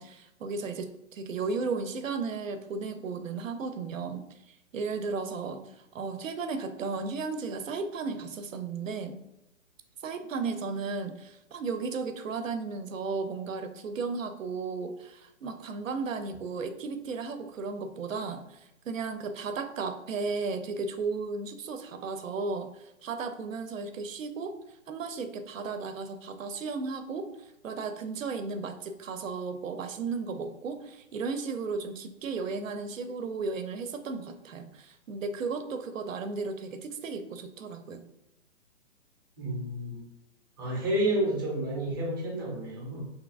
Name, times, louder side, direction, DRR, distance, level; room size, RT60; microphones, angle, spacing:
voice 1, 0.0-9.2 10.0-24.6 24.9-38.1, right 4 dB, 85° right, 9 dB, 0.5 m, -35 dB
voice 2, 39.4-40.0 40.6-43.0, right 1 dB, 20° right, -2 dB, 0.4 m, -30 dB
2.8 x 2.5 x 2.4 m, 0.88 s
figure-of-eight pair, 130°, 38 cm